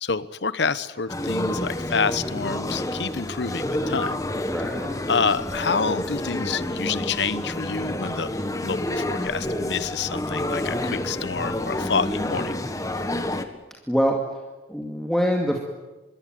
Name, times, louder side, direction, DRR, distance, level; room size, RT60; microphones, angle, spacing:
voice 1, 0.0-4.1 5.1-8.3 8.6-12.6, left 5 dB, 80° left, 15 dB, 1.0 m, -27 dB
Coffee Shop, 1.1-13.4, left 1 dB, 20° left, 1.5 m, -29 dB
voice 2, 4.5-4.9 13.9-14.2 14.7-15.6, equal, ahead, -1 dB, 2.3 m, -24 dB
26.0 x 22.5 x 9.3 m, 1.2 s
head